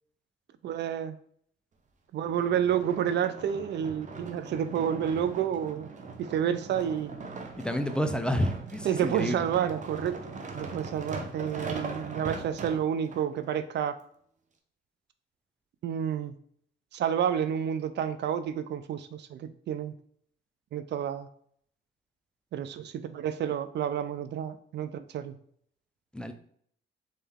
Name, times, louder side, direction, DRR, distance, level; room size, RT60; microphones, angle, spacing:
voice 1, 0.6-1.2 2.1-5.9 6.2-7.2 8.8-10.2 10.5-14.0 15.8-16.3 16.9-19.9 20.7-21.3 22.5-25.4, right 9 dB, 60° right, 12 dB, 0.4 m, -30 dB
sound 1, 2.2-13.2 13.9-14.0, right 4 dB, 40° right, 0.8 m, -40 dB
voice 2, 7.6-9.5 26.1-26.3, equal, 5° left, 8 dB, 0.4 m, -29 dB
4.0 x 3.7 x 3.5 m, 0.63 s
cardioid pair, 90°, 20 cm